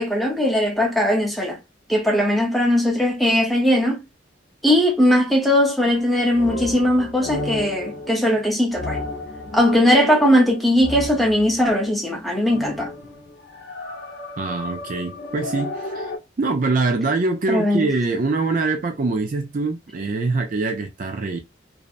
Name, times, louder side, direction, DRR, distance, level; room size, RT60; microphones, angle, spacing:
voice 1, 0.0-1.6 1.9-4.0 4.6-9.0 9.5-12.9 17.5-17.9, equal, ahead, 0.7 m, -19 dB
sound 1, 5.8-11.7 12.4-16.2, left 2 dB, 60° left, 0.7 m, -33 dB
voice 2, 14.4-16.1 16.4-21.4, right 3 dB, 40° right, 0.4 m, -24 dB
2.6 x 2.0 x 2.4 m
head